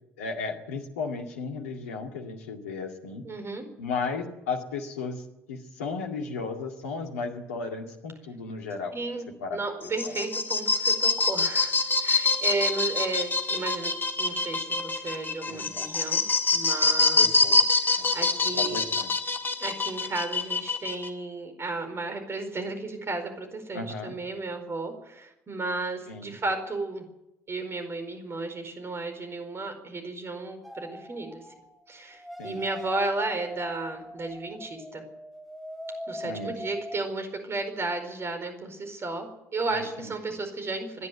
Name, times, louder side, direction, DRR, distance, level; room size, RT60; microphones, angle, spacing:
voice 1, 0.2-3.2 3.8-5.2 5.5-9.0 9.4-9.6 15.5-15.7 17.2-17.6 18.0-19.1 23.7-24.2 26.1-26.4 32.4-32.6 36.2-36.6 39.7-40.4, left 4 dB, 75° left, 3 dB, 2.2 m, -35 dB
voice 2, 3.2-3.6 8.9-9.3 9.5-13.9 14.2-16.2 16.5-17.3 17.8-18.8 19.6-27.0 27.5-31.4 31.9-35.0 36.1-41.1, right 3 dB, 35° right, 7 dB, 4.7 m, -33 dB
sound 1, 9.8-21.1, left 3 dB, 25° left, 2.1 m, -25 dB
sound 2, 30.6-31.7 32.1-37.0, equal, ahead, 4.0 m, -41 dB
26.0 x 11.0 x 9.5 m, 0.90 s
figure-of-eight pair, 50°, 8 cm